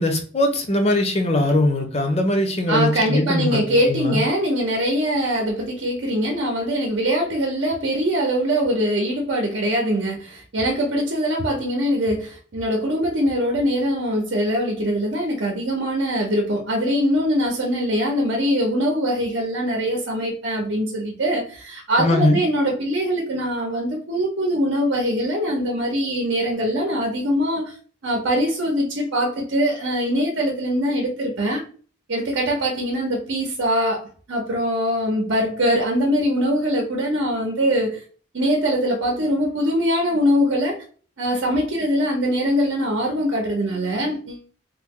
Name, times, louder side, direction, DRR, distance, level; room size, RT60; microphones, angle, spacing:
voice 1, 0.0-4.2 22.0-22.4, left 1 dB, 35° left, 0.6 m, -21 dB
voice 2, 2.7-27.7 28.0-31.6 32.1-38.0 38.3-40.8 41.2-44.4, equal, 75° right, 0.7 m, -22 dB
3.1 x 2.0 x 3.5 m
head